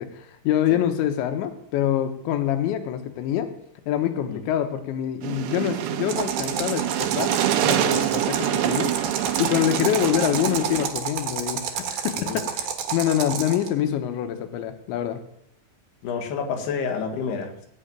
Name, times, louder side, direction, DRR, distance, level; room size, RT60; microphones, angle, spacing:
voice 1, 0.0-3.5 3.9-7.4 7.6-9.1 9.4-15.2, left 11 dB, 90° left, 7 dB, 3.4 m, -25 dB
sound 1, 5.2-10.9, right 11 dB, 80° right, 3.1 m, -26 dB
sound 2, 6.1-13.7, right 7 dB, 65° right, 2.9 m, -30 dB
voice 2, 12.1-12.4 16.0-17.7, left 6 dB, 65° left, 4 dB, 3.6 m, -29 dB
18.0 x 6.3 x 9.0 m, 0.74 s
omnidirectional pair, 5.1 m